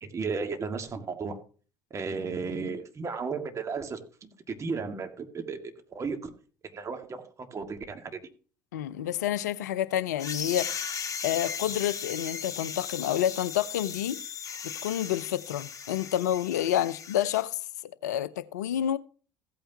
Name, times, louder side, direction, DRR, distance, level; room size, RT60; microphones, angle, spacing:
voice 1, 0.0-1.4 1.9-4.3 4.6-5.6 5.9-6.3 6.7-7.2 7.5-8.2, right 4 dB, 35° right, 1.9 m, -34 dB
voice 2, 8.7-11.0 11.2-14.2 14.6-17.6 18.0-19.0, left 11 dB, 75° left, 0.5 m, -29 dB
sound 1, 10.2-17.4, left 7 dB, 35° left, 1.8 m, -37 dB
15.0 x 8.9 x 2.9 m
figure-of-eight pair, 60°, 9 cm